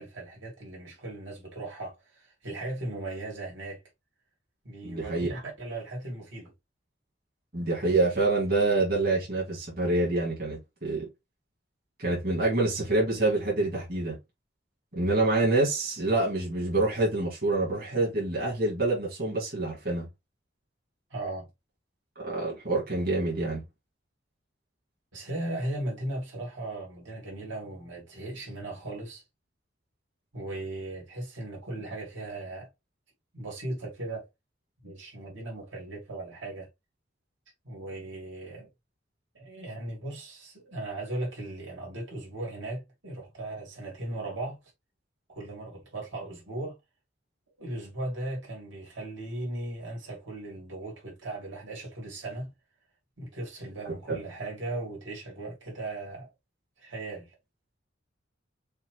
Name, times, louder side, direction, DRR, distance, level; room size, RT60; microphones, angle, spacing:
voice 1, 0.0-3.8 4.6-6.5 21.1-21.5 25.1-29.2 30.3-32.7 33.3-34.2 34.8-36.7 37.6-38.7 39.3-44.6 45.3-46.8 47.6-52.5 53.2-56.3 56.8-57.3, right 2 dB, 80° right, 2.9 m, -37 dB
voice 2, 4.8-5.3 7.5-11.1 12.0-14.2 14.9-20.1 22.2-23.6 53.8-54.2, right 2 dB, 50° right, 2.7 m, -26 dB
6.5 x 2.5 x 3.2 m
head